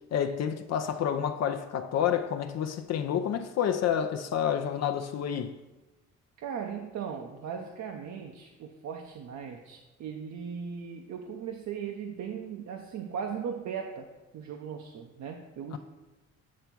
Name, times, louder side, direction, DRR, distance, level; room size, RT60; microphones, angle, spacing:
voice 1, 0.1-5.5 15.7-15.8, left 9 dB, 60° left, 0.5 m, -29 dB
voice 2, 6.4-15.8, right 7 dB, 65° right, 0.7 m, -38 dB
8.5 x 3.4 x 5.9 m
cardioid pair, 90°, 30 cm